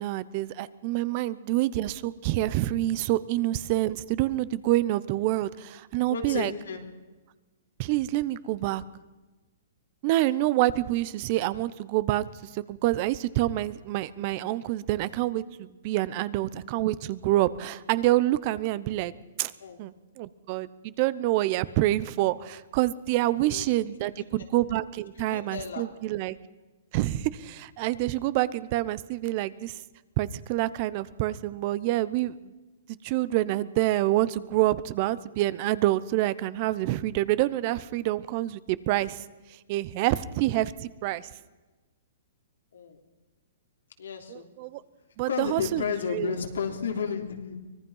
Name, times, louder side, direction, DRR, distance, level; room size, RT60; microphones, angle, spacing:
voice 1, 0.0-6.5 7.8-8.8 10.0-19.1 19.4-19.5 19.8-26.4 26.9-29.8 30.2-32.5 33.0-39.2 39.7-41.3 44.3-44.8 45.2-46.3, right 16 dB, 40° right, 17 dB, 0.8 m, -27 dB
voice 2, 6.1-6.8 19.6-19.8 23.5-24.2 25.2-25.8 42.7-43.0 44.0-44.4 45.3-47.6, left 6 dB, 90° left, 3 dB, 3.3 m, -33 dB
24.5 x 19.0 x 5.7 m, 1.2 s
hypercardioid pair, 145°, 0 cm